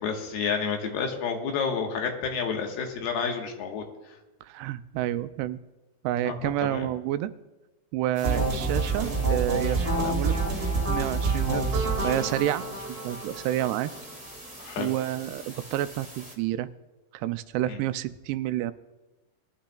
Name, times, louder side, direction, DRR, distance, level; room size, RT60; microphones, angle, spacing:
voice 1, 0.0-3.8 6.2-6.9 14.6-14.9 17.7-17.8, left 6 dB, 80° left, 2 dB, 3.4 m, -30 dB
voice 2, 4.4-5.6 6.0-7.3 7.9-10.4 10.9-12.6 13.0-13.9 14.8-16.7 17.1-18.7, right 13 dB, 90° right, 12 dB, 2.6 m, -29 dB
sound 1, 8.1-16.4, right 1 dB, 5° right, 0.7 m, -45 dB
sound 2, 8.2-14.2, right 3 dB, 30° right, 2.6 m, -27 dB
21.0 x 11.5 x 2.3 m, 1.1 s
omnidirectional pair, 4.5 m